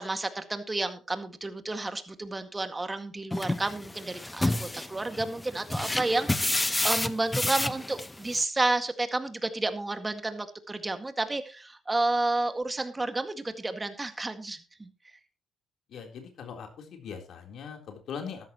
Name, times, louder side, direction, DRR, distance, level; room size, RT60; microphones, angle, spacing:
voice 1, 0.0-14.9, right 2 dB, 20° right, 8 dB, 2.0 m, -31 dB
sound 1, 3.3-8.4, left 2 dB, 15° left, 0.8 m, -30 dB
voice 2, 15.9-18.5, left 6 dB, 70° left, 4 dB, 3.7 m, -41 dB
14.0 x 13.0 x 3.0 m, 0.31 s
cardioid pair, 90°, 0 cm